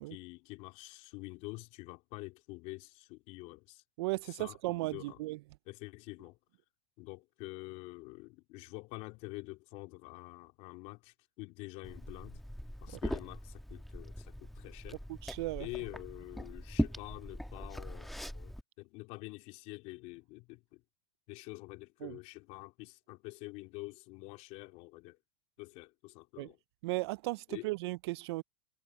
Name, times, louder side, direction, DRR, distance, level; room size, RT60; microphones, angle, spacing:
voice 1, 0.1-3.8 4.2-5.2 5.7-6.4 7.0-12.4 12.8-15.0 15.6-20.8 21.3-25.2 25.6-26.6 27.5-27.7, left 23 dB, 50° left, 3.3 m, -47 dB
voice 2, 4.0-5.4 15.1-15.7 22.0-22.2 26.4-26.5 26.8-28.4, right 21 dB, 60° right, 0.4 m, -36 dB
Liquid, 11.8-18.6, equal, ahead, 1.3 m, -40 dB
supercardioid pair, 130°, 15 cm